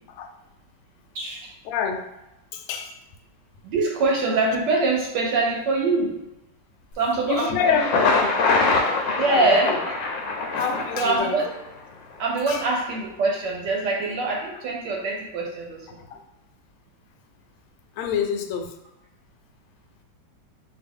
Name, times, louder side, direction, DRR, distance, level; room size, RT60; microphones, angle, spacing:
voice 1, 1.1-1.5 3.6-6.2 6.9-7.8 9.1-9.9 11.0-11.5 12.2-16.0, right 3 dB, 70° right, -1 dB, 1.1 m, -24 dB
voice 2, 1.7-2.0 2.5-2.9 7.3-8.3 9.3-9.8 10.5-11.4 12.5-12.6 16.1-16.2 18.0-18.7, left 7 dB, 90° left, 5 dB, 1.4 m, -26 dB
Thunder, 7.6-11.6, left 3 dB, 70° left, 1.2 m, -23 dB
4.5 x 2.6 x 3.5 m, 0.91 s
omnidirectional pair, 2.2 m